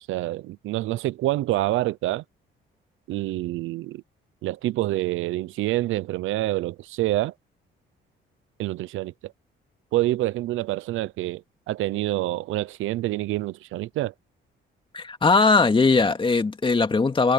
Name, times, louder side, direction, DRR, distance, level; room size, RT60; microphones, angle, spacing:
voice 1, 0.1-2.2 3.1-4.0 4.4-7.3 8.6-9.3 9.9-14.1, right 16 dB, 90° right, 0.8 m, -27 dB
voice 2, 14.9-17.3, left 4 dB, 25° left, 2.4 m, -20 dB
cardioid pair, 90°, 20 cm